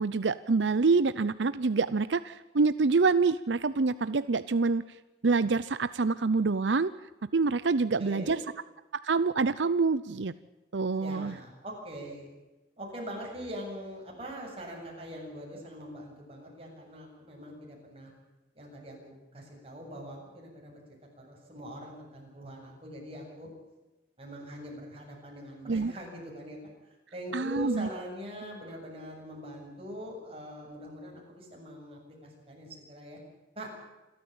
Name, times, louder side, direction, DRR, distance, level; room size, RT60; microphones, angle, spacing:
voice 1, 0.0-4.8 5.2-6.9 7.3-8.4 9.0-10.3 10.7-11.3 25.7-25.9 27.3-27.9, right 4 dB, 90° right, 15 dB, 0.7 m, -26 dB
voice 2, 8.0-8.4 11.0-12.3 12.8-18.1 18.5-20.8 21.2-23.5 24.2-26.6 27.1-33.2 33.6-33.7, equal, 35° right, -1 dB, 7.8 m, -43 dB
27.5 x 13.5 x 8.8 m, 1.1 s
head